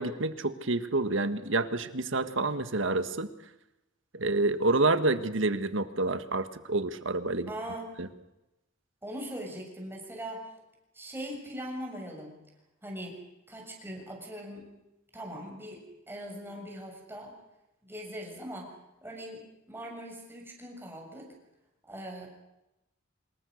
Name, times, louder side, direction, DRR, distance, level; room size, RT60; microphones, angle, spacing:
voice 1, 0.0-3.3 4.1-7.5 8.0-8.1, right 2 dB, 70° right, 11 dB, 1.7 m, -28 dB
voice 2, 7.5-8.0 9.0-10.5 10.9-12.3 12.8-13.2 13.5-14.7 15.1-17.3 17.8-18.8 19.0-19.4 19.7-21.3 21.8-22.3, equal, 10° right, 0 dB, 6.9 m, -40 dB
26.0 x 21.5 x 6.6 m, 0.92 s
head